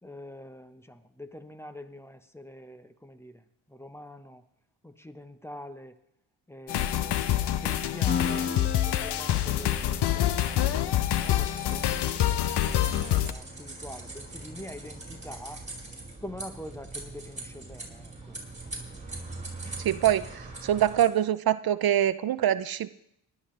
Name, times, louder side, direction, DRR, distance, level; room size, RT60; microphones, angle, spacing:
voice 1, 0.0-4.4 4.8-6.0 6.5-8.5 8.8-15.7 16.2-18.4, left 1 dB, 5° left, 10 dB, 1.0 m, -45 dB
sound 1, 6.7-13.3, left 12 dB, 70° left, 0.8 m, -26 dB
Piano, 8.1-15.5, left 5 dB, 25° left, 1.2 m, -38 dB
sound 2, 11.2-21.0, right 3 dB, 15° right, 5.3 m, -42 dB
voice 2, 19.8-20.3 20.6-22.9, right 11 dB, 60° right, 14 dB, 0.6 m, -24 dB
19.0 x 12.0 x 3.3 m, 0.76 s
cardioid pair, 75°, 42 cm